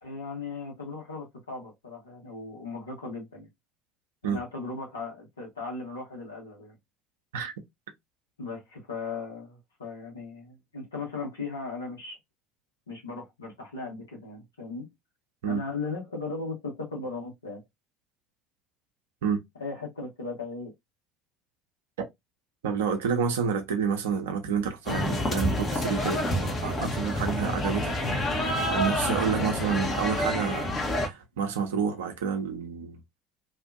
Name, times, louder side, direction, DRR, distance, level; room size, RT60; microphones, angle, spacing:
voice 1, 0.0-3.5 4.2-6.7 8.4-12.2 12.9-14.9 15.4-17.6 19.6-20.7 29.0-29.7, left 4 dB, 75° left, 1.2 m, -37 dB
voice 2, 22.6-33.0, right 6 dB, 70° right, 0.7 m, -29 dB
sound 1, 24.9-31.1, left 1 dB, 35° left, 1.0 m, -28 dB
2.7 x 2.5 x 2.5 m
figure-of-eight pair, 60°, 0 cm